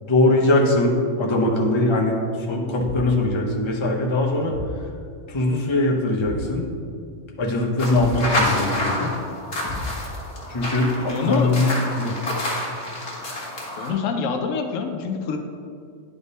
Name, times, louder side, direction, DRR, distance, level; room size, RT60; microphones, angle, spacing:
voice 1, 0.0-2.2 2.5-4.6 5.3-6.6 7.4-9.1 10.5-11.7 12.0-12.2, left 2 dB, 25° left, -2 dB, 0.8 m, -21 dB
Thump thud, 2.8-3.2 4.5-4.8 6.2-6.5 7.9-8.3 9.6-10.2, left 3 dB, 10° right, 1.1 m, -33 dB
sound 1, 7.8-13.9, left 1 dB, 50° left, 1.6 m, -28 dB
voice 2, 11.1-11.5 13.8-15.4, left 5 dB, 90° left, 4 dB, 1.0 m, -25 dB
10.0 x 3.6 x 4.1 m, 2.3 s
omnidirectional pair, 1.3 m